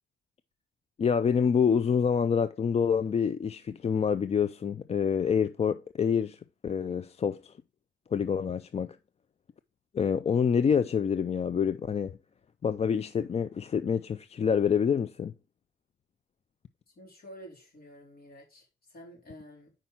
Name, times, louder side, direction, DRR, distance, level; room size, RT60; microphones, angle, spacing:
voice 1, 1.0-7.5 8.1-9.0 9.9-12.1 12.6-15.3, left 7 dB, 30° left, 0.4 m, -27 dB
voice 2, 17.0-19.7, equal, 50° left, 4.0 m, -50 dB
5.7 x 5.1 x 5.6 m
cardioid pair, 100°, 20 cm